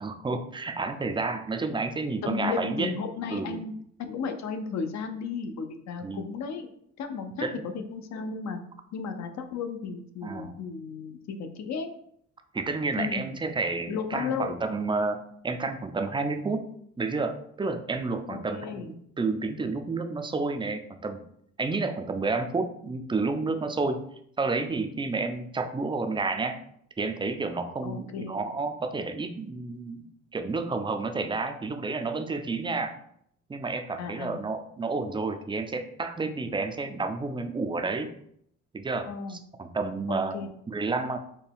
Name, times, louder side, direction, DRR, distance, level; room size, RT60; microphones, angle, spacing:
voice 1, 0.0-2.9 3.3-3.6 6.0-6.2 7.4-7.6 10.2-10.5 12.5-16.6 17.0-21.2 21.6-24.1 24.4-26.6 27.0-30.0 30.3-32.9 33.5-38.1 38.7-40.4 40.7-41.2, right 3 dB, 15° right, 7 dB, 0.4 m, -30 dB
voice 2, 2.2-6.7 7.0-8.6 8.9-11.9 13.0-13.2 13.9-14.6 18.3-18.9 27.8-28.5 34.0-34.4 39.1-39.4 40.1-40.5, left 5 dB, 65° left, 6 dB, 0.6 m, -34 dB
4.3 x 2.2 x 3.5 m, 0.69 s
cardioid pair, 90°, 30 cm